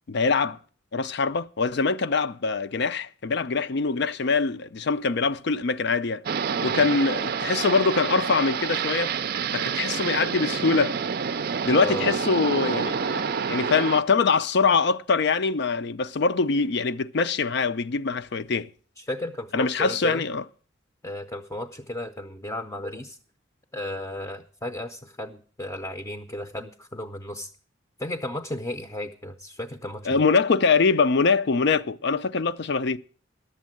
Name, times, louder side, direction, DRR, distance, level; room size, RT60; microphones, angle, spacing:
voice 1, 0.1-0.6 0.9-6.2 6.6-9.1 9.5-11.0 11.6-18.7 19.5-20.4 30.1-33.0, left 4 dB, 60° left, 0.5 m, -23 dB
sound 1, 6.2-14.0, right 6 dB, 50° right, 0.4 m, -28 dB
voice 2, 11.8-12.2 19.0-20.2 21.0-23.2 23.7-27.5 28.0-30.2, left 1 dB, 15° left, 0.6 m, -34 dB
11.5 x 7.4 x 7.6 m
head